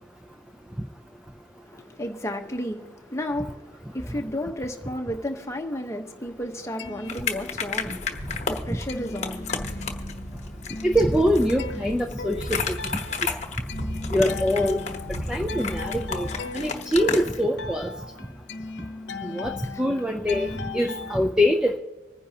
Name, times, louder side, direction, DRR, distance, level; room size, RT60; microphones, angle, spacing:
voice 1, 1.7-9.9 19.6-19.8 20.8-21.0, left 1 dB, 15° left, 1.0 m, -33 dB
sound 1, 6.6-8.0 8.3-21.2, left 3 dB, 65° left, 0.8 m, -38 dB
sound 2, 7.1-17.4, left 5 dB, 35° left, 1.1 m, -33 dB
sound 3, 7.8-16.4, equal, 35° right, 1.3 m, -36 dB
voice 2, 10.8-13.0 14.1-14.8 15.3-16.3 16.5-17.9 19.2-21.8, equal, 5° right, 0.4 m, -24 dB
25.5 x 10.0 x 2.8 m
head